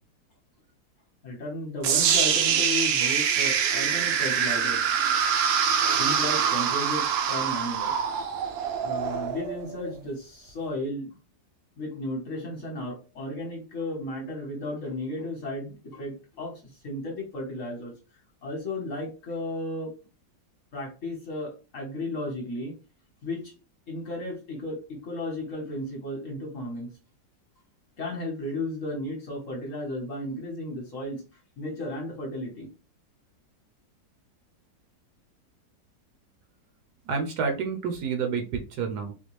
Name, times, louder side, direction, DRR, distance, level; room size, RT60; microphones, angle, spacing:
voice 1, 1.2-4.9 6.0-7.9 8.8-11.2 11.8-17.9 18.4-19.9 20.7-22.7 23.2-23.5 23.9-26.9 28.0-31.2 31.6-32.7, left 1 dB, 50° left, 0 dB, 1.3 m, -34 dB
sound 1, 1.8-9.9, right 7 dB, 85° right, 1.3 m, -25 dB
voice 2, 37.1-39.1, right 5 dB, 70° right, 4 dB, 1.1 m, -29 dB
4.2 x 2.2 x 3.1 m, 0.32 s
omnidirectional pair, 2.0 m